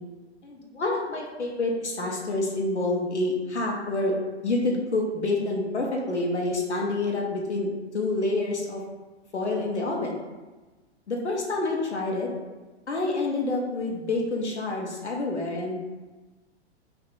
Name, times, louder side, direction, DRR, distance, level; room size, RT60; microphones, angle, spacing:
voice 1, 0.4-4.1 4.4-7.7 7.9-8.8 9.3-10.3 11.1-12.3 12.9-15.8, left 2 dB, 80° left, -1 dB, 0.7 m, -27 dB
2.6 x 2.4 x 3.7 m, 1.2 s
figure-of-eight pair, 105°, 33 cm